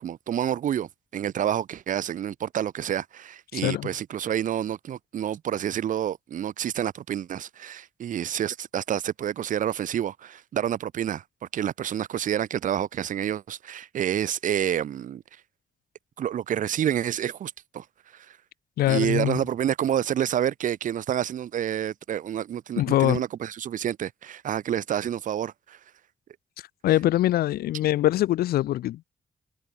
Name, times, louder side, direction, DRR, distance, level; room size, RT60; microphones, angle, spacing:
voice 1, 0.0-11.2 11.5-15.2 16.2-17.8 18.1-18.4 18.9-25.8, right 10 dB, 55° right, 0.4 m, -28 dB
voice 2, 3.5-3.9 18.8-19.4 22.8-23.2 26.8-29.1, left 14 dB, 85° left, 0.6 m, -23 dB
supercardioid pair, 50°, 16 cm